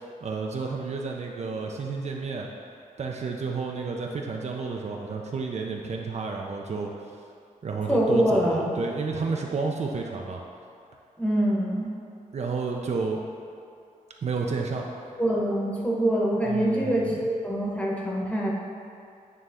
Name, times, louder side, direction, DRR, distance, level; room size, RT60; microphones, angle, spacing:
voice 1, 0.0-2.5 3.0-6.9 7.6-10.4 12.3-13.2 14.2-14.9 16.4-17.2, right 4 dB, 55° right, 0 dB, 0.5 m, -31 dB
voice 2, 7.9-8.7 11.2-11.9 15.2-18.5, right 1 dB, 10° left, -4 dB, 1.1 m, -24 dB
9.0 x 3.2 x 3.6 m, 2.5 s
wide cardioid pair, 100°, 14 cm